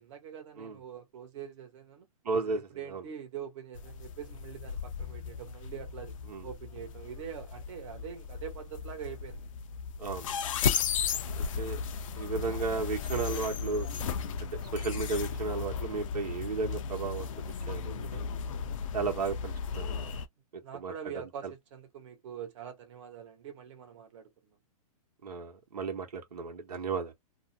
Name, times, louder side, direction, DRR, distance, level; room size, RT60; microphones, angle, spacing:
voice 1, 0.0-2.1 2.4-6.2 6.4-9.5 20.6-24.6, right 8 dB, 50° right, 1.0 m, -44 dB
voice 2, 2.2-2.6 2.9-3.0 6.3-6.4 10.0-10.3 11.4-11.8 12.1-13.9 14.7-17.3 17.7-18.3 18.9-20.0 20.7-20.9 25.2-27.1, right 4 dB, 85° right, 0.9 m, -34 dB
sound 1, 3.7-20.3, left 6 dB, 55° left, 0.5 m, -35 dB
2.6 x 2.0 x 2.6 m
hypercardioid pair, 145°, 20 cm